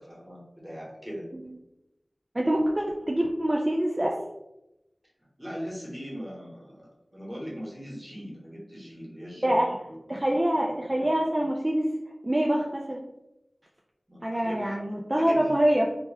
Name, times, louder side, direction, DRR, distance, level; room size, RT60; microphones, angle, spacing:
voice 1, 0.0-1.2 5.4-9.6 14.1-14.8 15.2-15.5, equal, 10° right, -5 dB, 1.1 m, -40 dB
voice 2, 2.3-4.2 9.4-9.7 10.1-11.9 12.2-13.0 14.2-15.9, right 1 dB, 30° right, -2 dB, 0.4 m, -25 dB
2.9 x 2.2 x 3.3 m, 0.91 s
wide cardioid pair, 50°, 0 cm